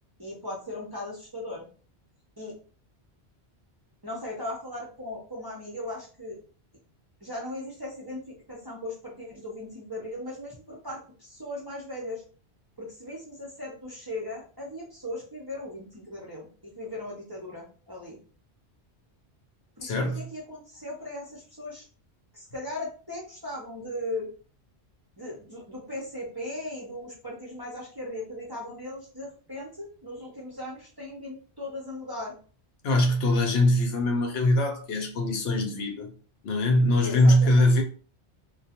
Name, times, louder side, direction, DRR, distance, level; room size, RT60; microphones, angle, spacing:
voice 1, 0.2-1.7 2.4-2.5 4.0-6.4 7.2-12.2 12.8-18.2 19.8-21.9 22.3-24.3 25.2-32.3 37.0-37.7, left 1 dB, 25° right, 0.6 m, -38 dB
voice 2, 19.8-20.3 32.8-36.1 36.4-37.8, left 1 dB, 70° left, 0.8 m, -22 dB
2.3 x 2.2 x 2.7 m
omnidirectional pair, 1.1 m